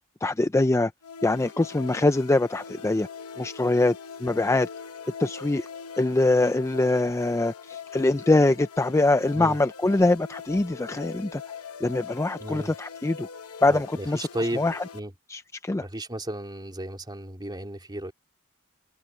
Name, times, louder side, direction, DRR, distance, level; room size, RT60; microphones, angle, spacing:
voice 1, 0.2-0.9 1.2-3.1 3.4-4.0 4.2-4.7 5.2-5.7 6.0-11.4 11.8-13.3 13.6-14.3 14.6-14.8 15.3-15.9, left 2 dB, 15° left, 0.4 m, -23 dB
sound 1, 1.0-15.0, left 6 dB, 80° left, 1.0 m, -42 dB
voice 2, 12.4-12.7 13.7-14.7 14.9-15.1 15.8-18.1, right 1 dB, 20° right, 2.9 m, -34 dB
head